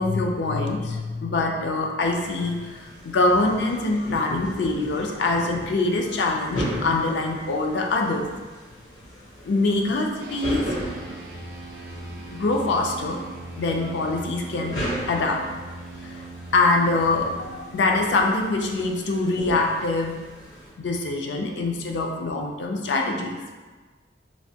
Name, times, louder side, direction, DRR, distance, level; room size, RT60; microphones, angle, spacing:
voice 1, 0.0-8.3 9.4-10.6 12.3-13.2 13.6-15.5 16.0-16.3 16.5-20.2 20.8-23.4, left 2 dB, 70° left, 2 dB, 0.4 m, -24 dB
sound 1, 2.0-20.7, equal, 90° left, 0.9 m, -37 dB
sound 2, 10.2-19.9, right 2 dB, 50° right, 0.4 m, -41 dB
3.2 x 2.6 x 2.7 m, 1.3 s
head